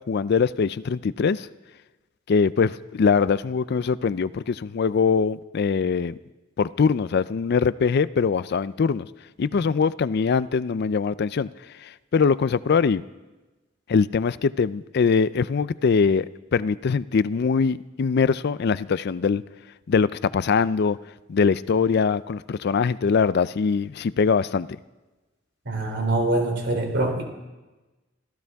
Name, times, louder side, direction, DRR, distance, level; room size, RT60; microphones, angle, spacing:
voice 1, 0.1-1.5 2.3-6.2 6.6-9.1 9.4-11.5 11.8-13.0 13.9-16.3 16.5-19.4 19.9-21.0 21.3-24.7, left 5 dB, 55° left, 16 dB, 0.4 m, -22 dB
voice 2, 25.6-27.2, right 2 dB, 60° right, 3 dB, 3.3 m, -24 dB
26.0 x 15.0 x 3.5 m, 1.1 s
head